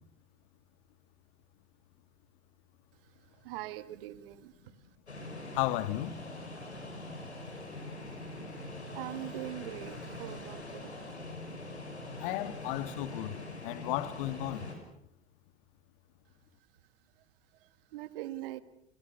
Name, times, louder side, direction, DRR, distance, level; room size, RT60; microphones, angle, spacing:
voice 1, 3.0-4.9 8.6-11.0 17.2-17.3 17.5-18.6, right 15 dB, 60° right, 1.7 m, -43 dB
sound 1, 5.1-14.8, left 2 dB, 85° left, 5.9 m, -43 dB
voice 2, 5.5-6.2 12.2-13.4 13.6-14.7, left 16 dB, 55° left, 1.8 m, -34 dB
30.0 x 23.5 x 6.9 m
figure-of-eight pair, 75°, 32 cm